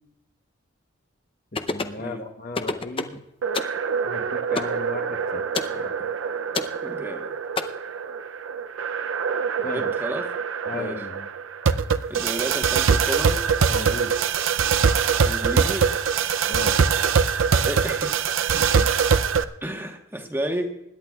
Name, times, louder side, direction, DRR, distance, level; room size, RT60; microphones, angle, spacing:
voice 1, 1.5-3.2 4.0-5.4 5.7-5.9 9.6-9.9 10.6-11.3 13.7-14.1 16.5-16.8 18.5-18.9, left 2 dB, 45° left, 5 dB, 1.1 m, -35 dB
sound 1, 1.6-2.0 2.5-3.2 3.5-3.8 4.6-4.8 5.5-5.8 6.5-6.8 7.6-7.7, left 3 dB, 25° left, 0.6 m, -27 dB
sound 2, 3.4-19.4, right 6 dB, 75° right, 0.5 m, -23 dB
voice 2, 6.8-7.3 9.6-10.2 10.7-11.0 12.1-13.5 15.2-15.9 17.7-18.2 19.6-20.8, equal, 10° right, 3 dB, 1.3 m, -31 dB
25.5 x 11.0 x 2.4 m, 0.84 s
head